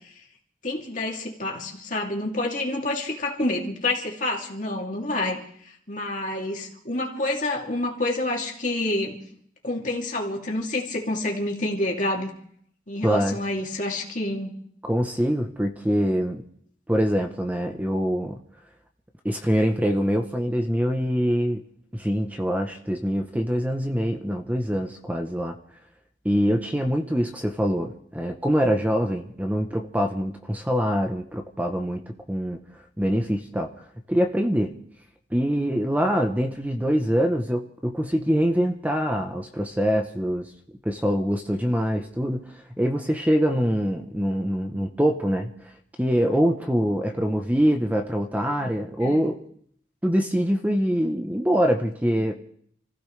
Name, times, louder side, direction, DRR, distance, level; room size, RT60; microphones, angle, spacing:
voice 1, 0.6-5.4 5.9-9.1 9.6-12.3 12.9-14.5 48.6-48.7 49.0-49.2, left 2 dB, 45° left, -1 dB, 2.6 m, -28 dB
voice 2, 13.0-13.4 14.8-16.4 16.9-18.4 19.2-21.6 21.9-25.6 26.2-32.6 33.0-34.7 35.3-40.5 40.8-45.7 46.0-49.4 50.0-52.3, equal, 10° right, 4 dB, 0.8 m, -24 dB
29.0 x 15.5 x 3.3 m, 0.64 s
head